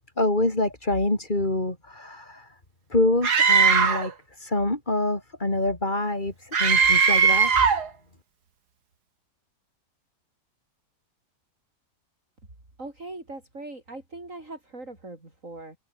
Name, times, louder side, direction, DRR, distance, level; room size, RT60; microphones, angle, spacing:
voice 1, 0.2-2.5 2.9-4.1 4.4-7.5, left 2 dB, 30° left, 4.3 m, -26 dB
Screaming, 3.2-4.1 6.5-7.9, right 6 dB, 85° right, 2.6 m, -19 dB
voice 2, 12.8-15.8, right 2 dB, 50° right, 6.4 m, -40 dB
omnidirectional pair, 1.7 m